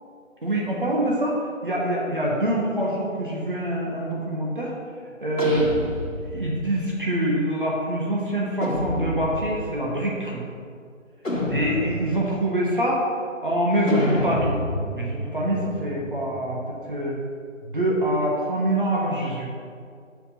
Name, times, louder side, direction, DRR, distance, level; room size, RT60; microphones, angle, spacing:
voice 1, 0.4-4.7 5.2-5.7 6.2-10.4 11.5-13.0 13.4-14.5 14.9-17.2 17.6-19.5, right 1 dB, 40° right, -4 dB, 1.1 m, -25 dB
sound 1, 5.4-6.7 8.6-9.7 11.2-12.3 13.9-16.6, left 1 dB, 75° left, 1.6 m, -29 dB
6.4 x 4.9 x 5.5 m, 2.2 s
figure-of-eight pair, 165°, 39 cm